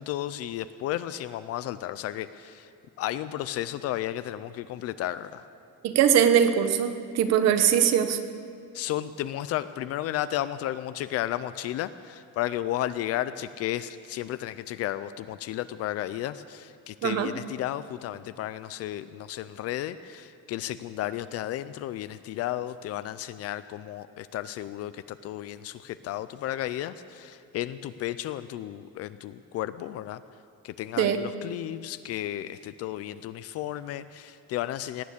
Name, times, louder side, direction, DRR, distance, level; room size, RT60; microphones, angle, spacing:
voice 1, 0.0-2.7 3.0-5.4 8.7-30.2 30.6-35.0, left 13 dB, 50° left, 14 dB, 0.5 m, -33 dB
voice 2, 5.8-8.2 17.0-17.3 31.0-31.2, right 9 dB, 50° right, 9 dB, 1.0 m, -21 dB
18.0 x 9.6 x 8.4 m, 2.4 s
cardioid pair, 180°, 32 cm